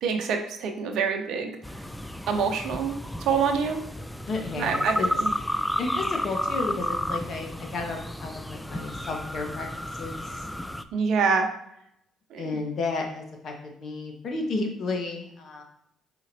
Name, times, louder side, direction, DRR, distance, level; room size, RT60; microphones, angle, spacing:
voice 1, 0.0-1.6 2.3-3.8 4.6-5.3 10.9-11.5 12.3-12.5, right 5 dB, 70° right, 4 dB, 0.7 m, -26 dB
sound 1, 1.6-10.8, left 1 dB, 5° left, 0.4 m, -32 dB
voice 2, 4.3-5.1 5.8-9.7 10.0-10.4 12.4-15.6, left 3 dB, 55° left, 2 dB, 1.1 m, -32 dB
5.0 x 4.1 x 2.6 m, 0.76 s
supercardioid pair, 65°, 0 cm